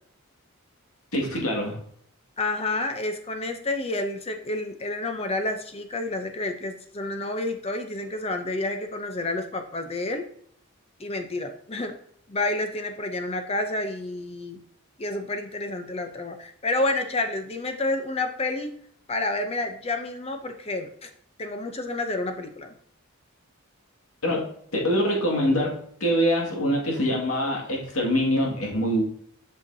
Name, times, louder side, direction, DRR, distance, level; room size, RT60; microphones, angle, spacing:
voice 1, 1.1-1.8 24.2-29.0, equal, 85° left, 0 dB, 2.0 m, -24 dB
voice 2, 2.4-10.2 11.0-11.9 12.3-14.6 15.0-18.7 19.1-21.1 21.4-22.7, left 2 dB, 30° left, 6 dB, 0.6 m, -29 dB
8.0 x 5.6 x 2.7 m, 0.64 s
head